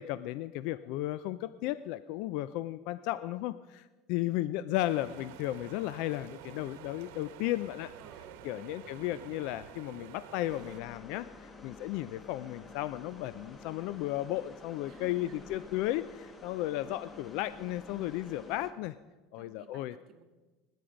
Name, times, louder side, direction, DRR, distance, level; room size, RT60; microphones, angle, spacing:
voice 1, 0.0-7.9 8.4-18.9 19.3-19.9, left 15 dB, 65° left, 15 dB, 0.4 m, -34 dB
sound 1, 4.8-10.8, right 10 dB, 75° right, 1.2 m, -49 dB
voice 2, 8.0-9.3 14.9-15.7 19.4-20.2, right 6 dB, 45° right, 4 dB, 1.8 m, -57 dB
sound 2, 10.5-18.7, left 3 dB, 20° left, 1.2 m, -50 dB
19.5 x 9.3 x 5.1 m, 1.2 s
supercardioid pair, 120°, 0 cm